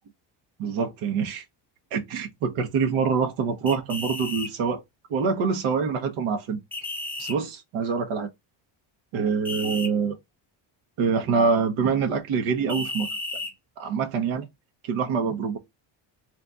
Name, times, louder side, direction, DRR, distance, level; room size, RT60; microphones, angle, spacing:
voice 1, 0.6-1.4 1.9-4.8 5.1-6.6 7.2-8.3 9.1-10.2 11.0-13.1 13.8-14.5 14.8-15.6, right 5 dB, 85° right, 1.1 m, -25 dB
sound 1, 3.7-4.5 6.7-7.4 9.4-9.9 12.7-13.5, left 2 dB, 5° left, 0.6 m, -33 dB
3.6 x 3.2 x 4.0 m
cardioid pair, 175°, 47 cm